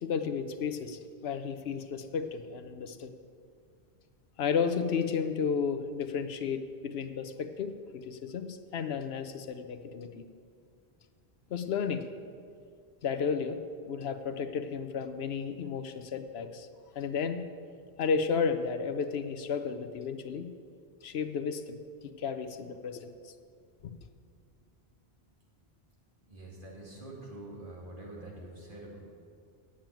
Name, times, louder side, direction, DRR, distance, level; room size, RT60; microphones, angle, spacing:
voice 1, 0.0-3.1 4.4-10.3 11.5-12.0 13.0-13.6 13.9-16.7 16.9-17.5 18.0-20.5 21.0-21.8 22.0-23.3, left 6 dB, 75° left, 9 dB, 0.9 m, -33 dB
voice 2, 26.3-29.0, right 1 dB, 50° right, -4 dB, 2.8 m, -45 dB
8.9 x 7.4 x 9.0 m, 2.3 s
omnidirectional pair, 1.1 m